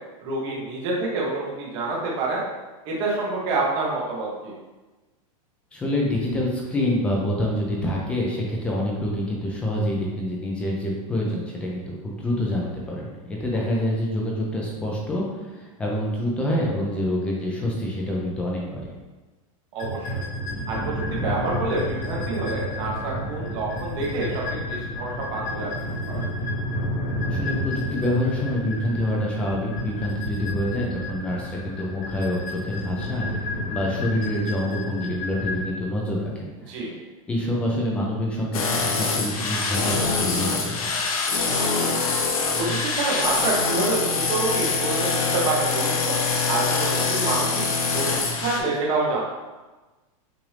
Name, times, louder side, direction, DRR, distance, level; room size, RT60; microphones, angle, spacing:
voice 1, 0.2-2.4 2.9-4.5 13.5-13.7 19.7-20.3 20.7-26.3 36.7-36.9 41.5-42.0 42.6-46.2 46.5-47.6 47.9-49.2, right 3 dB, 25° right, -4 dB, 0.9 m, -27 dB
voice 2, 5.7-18.9 27.3-36.8 37.3-40.8, left 1 dB, 5° left, -3 dB, 0.4 m, -27 dB
sound 1, 19.8-35.6, left 1 dB, 25° left, 0.8 m, -31 dB
sound 2, 38.5-48.6, left 4 dB, 85° left, 0.9 m, -24 dB
6.0 x 2.5 x 3.2 m, 1.2 s
supercardioid pair, 180°, 18 cm